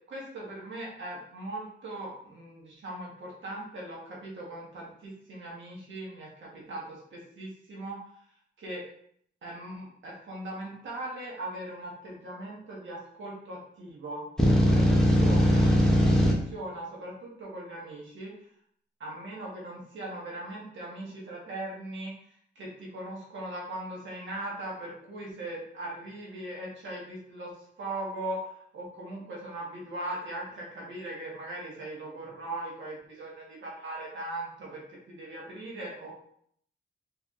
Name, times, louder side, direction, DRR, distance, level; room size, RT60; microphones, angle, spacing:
voice 1, 0.0-8.0 8.6-8.8 9.4-15.7 16.1-18.3 19.0-22.1 22.5-27.5 27.8-36.2, right 1 dB, 85° right, -4 dB, 1.3 m, -39 dB
sound 1, 14.4-16.3, equal, 5° left, 0.7 m, -20 dB
4.2 x 3.4 x 2.5 m, 0.66 s
wide cardioid pair, 145°, 19 cm